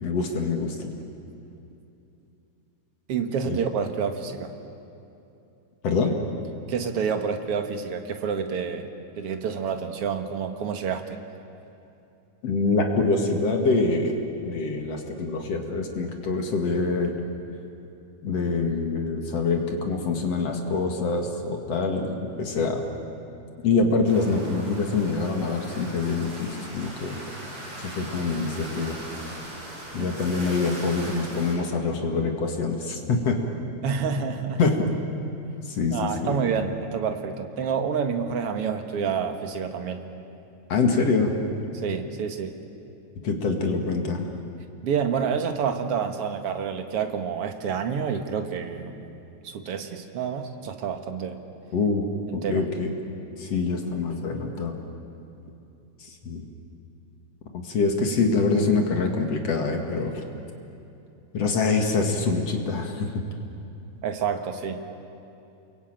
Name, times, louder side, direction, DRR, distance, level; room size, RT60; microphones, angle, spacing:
voice 1, 0.0-0.9 3.5-3.6 5.8-6.2 12.4-17.1 18.2-22.8 23.6-27.2 27.8-29.0 29.9-33.4 34.6-34.9 35.7-36.4 40.7-41.3 43.2-44.2 51.7-52.1 52.3-52.9 53.4-54.8 56.0-56.5 57.5-60.2 61.3-63.2, left 4 dB, 50° left, 3 dB, 2.8 m, -25 dB
voice 2, 3.1-4.5 6.7-8.9 9.2-11.1 30.0-30.1 33.8-34.6 35.9-40.0 41.8-42.6 44.8-49.1 49.4-51.4 52.3-52.6 64.0-64.9, right 6 dB, 50° right, 6 dB, 2.1 m, -28 dB
sound 1, 24.1-31.5, right 1 dB, 70° right, 9.0 m, -39 dB
29.0 x 23.0 x 9.0 m, 2.8 s
omnidirectional pair, 3.9 m